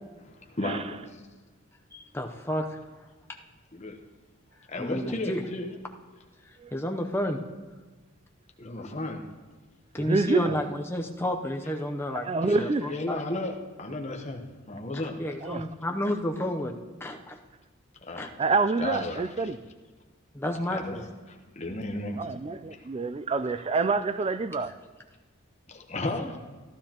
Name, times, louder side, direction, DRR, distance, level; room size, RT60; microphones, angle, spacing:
voice 1, 0.2-1.2 3.7-4.0 4.7-5.7 8.6-9.3 12.4-15.2 18.0-18.3 18.8-19.2 20.7-22.2 22.7-22.9 25.7-26.4, left 2 dB, 30° left, 1.0 m, -34 dB
voice 2, 1.9-2.8 4.8-5.4 6.7-7.4 9.9-12.3 12.6-13.2 15.2-16.7 17.0-17.4 18.2-18.3 20.3-21.0, left 1 dB, 10° left, 0.7 m, -31 dB
voice 3, 10.0-10.6 12.1-12.9 15.4-15.7 18.4-19.6 22.2-24.7, right 3 dB, 25° right, 0.3 m, -27 dB
14.5 x 12.0 x 2.9 m
head